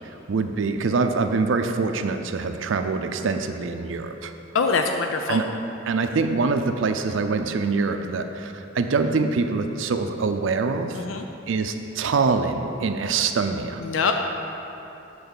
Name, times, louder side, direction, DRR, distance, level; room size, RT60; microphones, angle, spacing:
voice 1, 0.3-4.3 5.3-5.5 5.9-11.0 11.5-13.8, right 4 dB, 75° right, 7 dB, 0.4 m, -24 dB
voice 2, 4.5-5.4 10.9-11.2 13.8-14.1, left 5 dB, 85° left, 4 dB, 0.5 m, -23 dB
8.0 x 4.1 x 6.7 m, 2.9 s
head